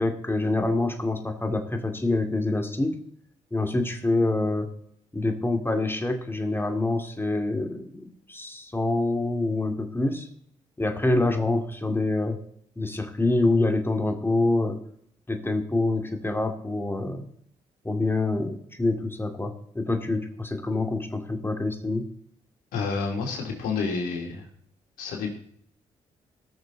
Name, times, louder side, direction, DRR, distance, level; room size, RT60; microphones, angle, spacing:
voice 1, 0.0-3.0 3.5-4.7 5.1-10.3 10.8-12.4 12.8-14.8 15.3-17.3 17.8-22.1, left 2 dB, 15° left, 5 dB, 2.5 m, -26 dB
voice 2, 22.7-24.4 25.0-25.3, left 4 dB, 85° left, 1 dB, 2.9 m, -29 dB
19.0 x 6.8 x 4.0 m, 0.67 s
supercardioid pair, 50°, 14 cm